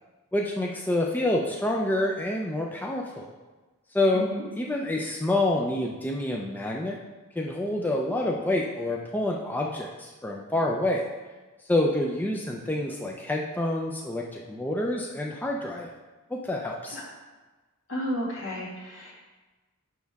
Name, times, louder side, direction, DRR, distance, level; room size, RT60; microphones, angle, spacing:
voice 1, 0.3-3.3 3.9-4.2 4.6-7.0 7.4-11.1 11.7-15.9 16.3-17.0, left 1 dB, 10° left, -1 dB, 0.4 m, -27 dB
voice 2, 4.1-4.5 16.9-17.1 17.9-19.1, equal, 65° left, -5 dB, 2.2 m, -32 dB
6.4 x 5.8 x 3.5 m, 1.2 s
head